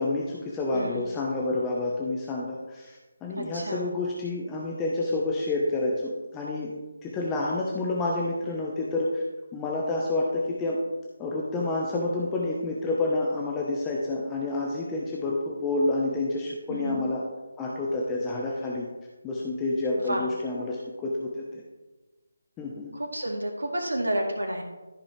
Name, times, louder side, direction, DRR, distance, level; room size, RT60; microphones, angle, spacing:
voice 1, 0.0-6.7 7.0-9.2 9.5-10.8 11.2-17.2 17.6-18.9 19.2-21.6 22.6-22.9, left 2 dB, 15° left, -3 dB, 0.9 m, -29 dB
voice 2, 0.7-1.2 3.4-3.9 16.7-17.0 20.1-20.2 22.9-24.6, right 1 dB, 75° right, 1 dB, 2.1 m, -30 dB
13.5 x 5.1 x 3.2 m, 1.2 s
figure-of-eight pair, 155°, 0 cm